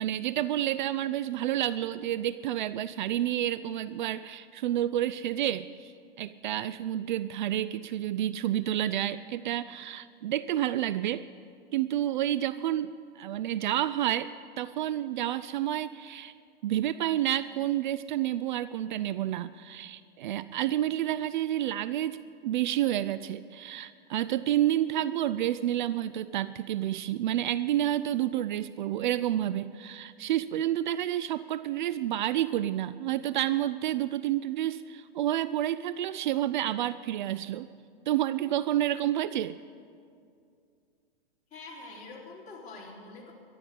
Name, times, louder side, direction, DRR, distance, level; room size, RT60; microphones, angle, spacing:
voice 1, 0.0-5.9 6.2-11.2 11.7-14.3 14.6-16.3 16.6-37.7 38.1-39.6, right 12 dB, 50° right, 15 dB, 0.4 m, -29 dB
voice 2, 41.5-43.3, left 3 dB, 25° left, -4 dB, 4.0 m, -45 dB
12.5 x 11.0 x 8.5 m, 2.3 s
hypercardioid pair, 115°, 30 cm